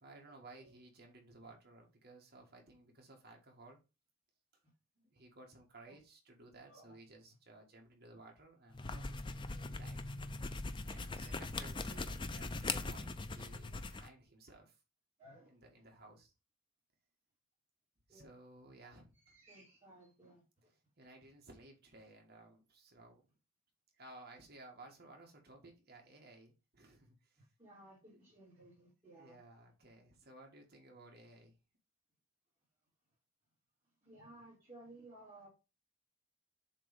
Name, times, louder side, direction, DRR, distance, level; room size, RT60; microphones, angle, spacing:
voice 1, 0.0-3.8 5.0-9.0 9.7-10.0 10.8-14.8 15.5-16.3 18.1-19.4 21.0-23.2 23.9-27.4 28.0-28.3 29.2-31.5, right 2 dB, 45° right, 1.5 m, -57 dB
voice 2, 6.7-7.0 8.9-9.7 11.1-11.4 11.6-12.1 15.2-15.5 18.1-18.3 18.8-19.0 19.3-20.4 27.4-29.4 34.0-35.5, right 1 dB, 25° right, 2.5 m, -58 dB
Pencil Eraser, 8.7-14.1, left 3 dB, 20° left, 0.4 m, -41 dB
7.3 x 3.1 x 5.1 m
head